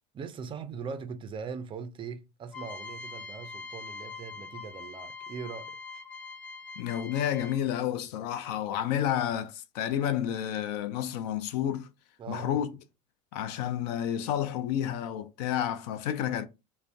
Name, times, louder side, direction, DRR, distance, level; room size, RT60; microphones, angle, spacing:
voice 1, 0.1-5.8 12.2-12.6, right 6 dB, 25° right, 0.3 m, -40 dB
sound 1, 2.5-7.8, left 4 dB, 40° left, 1.0 m, -43 dB
voice 2, 6.8-11.9 12.3-12.7 13.3-16.5, left 10 dB, 80° left, 0.4 m, -30 dB
2.5 x 2.1 x 3.3 m
supercardioid pair, 120°, 21 cm